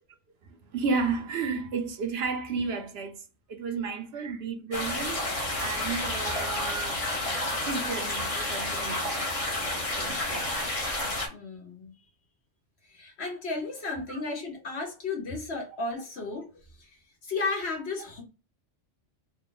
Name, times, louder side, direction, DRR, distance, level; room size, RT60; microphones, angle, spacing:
voice 1, 0.6-3.2 3.5-5.2 5.6-7.0 7.6-9.2 9.8-10.5 14.1-14.2, right 4 dB, 60° right, 0.9 m, -32 dB
sound 1, 4.7-11.3, left 1 dB, 30° left, 0.9 m, -30 dB
voice 2, 11.3-11.9 12.9-16.5 16.8-17.0 17.2-18.2, left 3 dB, 60° left, 1.3 m, -34 dB
3.1 x 2.3 x 3.9 m
omnidirectional pair, 1.3 m